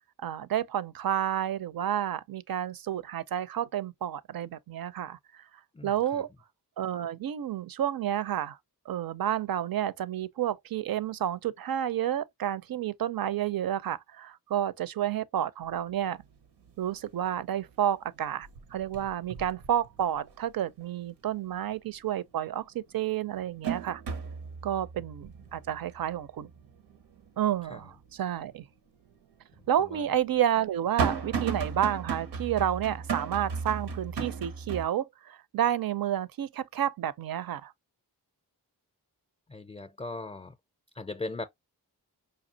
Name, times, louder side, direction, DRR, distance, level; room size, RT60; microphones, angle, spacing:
voice 1, 0.2-5.4 5.8-6.3 6.8-8.6 8.9-16.2 16.8-24.0 24.6-26.5 27.4-28.6 29.7-37.7, right 10 dB, 60° right, 0.5 m, -30 dB
voice 2, 5.7-6.2 27.6-27.8 29.8-30.0 39.5-40.5 40.9-41.5, left 3 dB, 15° left, 0.5 m, -39 dB
sound 1, 15.7-15.8 16.2-16.7 17.1-17.9 18.2-20.4 20.8-20.9 22.4-22.5 23.0-28.1 28.5-28.6 29.5-34.9, right 5 dB, 90° right, 0.8 m, -35 dB
5.1 x 2.4 x 2.7 m
cardioid pair, 50°, 40 cm